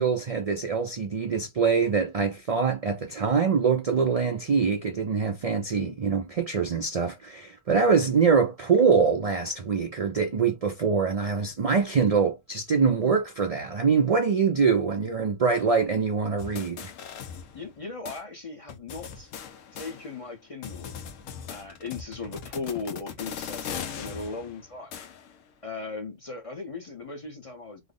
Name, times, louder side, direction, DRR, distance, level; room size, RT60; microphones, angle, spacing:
voice 1, 0.0-16.9, right 5 dB, 70° right, 0.3 m, -24 dB
voice 2, 5.8-6.1 17.5-19.3 19.7-20.9 21.5-24.9 25.6-27.9, left 4 dB, 35° left, 0.6 m, -38 dB
sound 1, 16.4-17.8 18.1-18.2 18.7-20.3 20.6-25.4, left 7 dB, 85° left, 1.0 m, -39 dB
3.3 x 2.0 x 3.6 m
omnidirectional pair, 1.3 m